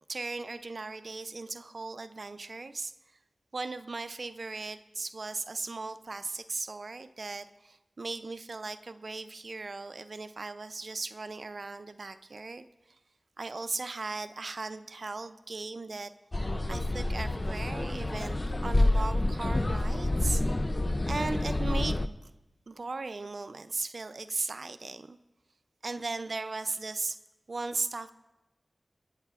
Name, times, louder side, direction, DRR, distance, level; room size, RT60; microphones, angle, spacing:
voice 1, 0.1-2.9 3.5-12.7 13.4-16.1 16.7-20.4 21.1-22.3 22.7-25.2 25.8-27.2 27.5-28.1, right 3 dB, 65° right, 11 dB, 0.4 m, -37 dB
sound 1, 16.3-22.1, left 1 dB, 35° left, 0.4 m, -28 dB
18.0 x 8.9 x 2.4 m, 0.99 s
cardioid pair, 45°, 0 cm